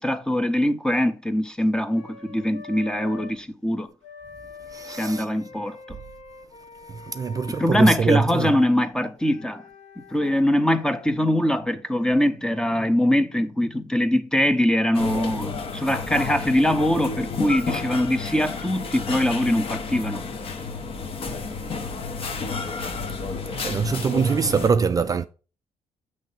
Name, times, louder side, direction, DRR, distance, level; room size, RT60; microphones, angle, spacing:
voice 1, 0.0-3.9 4.9-5.8 7.6-9.6 10.1-20.2, left 1 dB, 5° left, 0.6 m, -22 dB
Wind instrument woodwind instrument, 1.9-3.3 4.0-8.6 9.2-11.1, left 5 dB, 90° left, 1.3 m, -44 dB
voice 2, 4.7-5.3 6.9-8.5 23.6-25.3, right 5 dB, 30° right, 0.3 m, -23 dB
sound 1, 14.9-24.7, left 4 dB, 55° left, 1.0 m, -31 dB
7.1 x 3.2 x 5.5 m
cardioid pair, 110°, 12 cm